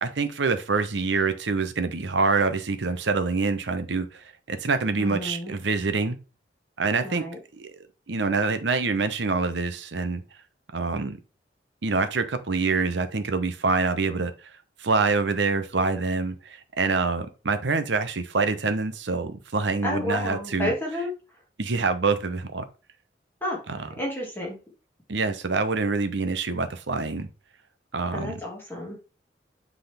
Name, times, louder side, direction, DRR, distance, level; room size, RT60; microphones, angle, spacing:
voice 1, 0.0-6.2 6.8-7.3 7.5-7.7 8.1-10.2 10.7-11.2 11.8-14.3 14.8-20.7 21.6-22.6 23.7-23.9 25.1-27.3 27.9-28.4, right 4 dB, 80° right, 0.8 m, -26 dB
voice 2, 5.0-5.5 7.0-7.4 19.8-21.1 23.4-23.6 24.0-24.6 28.1-29.0, left 1 dB, 10° left, 1.9 m, -30 dB
8.0 x 3.8 x 3.4 m
head